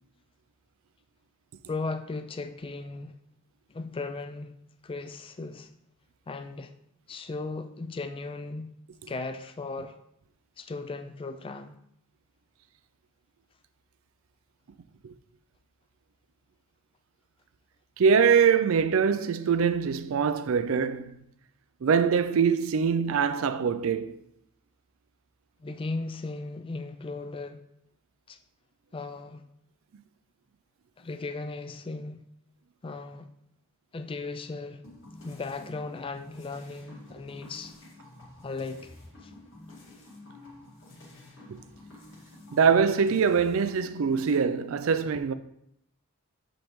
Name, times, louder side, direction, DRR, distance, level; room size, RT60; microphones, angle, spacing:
voice 1, 1.7-3.2 3.7-4.5 4.8-5.7 6.3-6.7 7.1-8.7 9.1-10.0 10.6-11.8 25.6-27.6 28.3-28.4 28.9-29.4 31.0-32.2 32.8-33.3 33.9-34.8 35.2-37.7 38.4-38.9 39.2-39.3, left 3 dB, 25° left, 0.3 m, -36 dB
voice 2, 18.0-21.2 21.8-24.2 41.5-41.6 42.5-45.3, right 6 dB, 65° right, 0.4 m, -23 dB
sound 1, 34.8-44.4, left 2 dB, 60° left, 2.2 m, -50 dB
7.2 x 5.1 x 3.1 m
head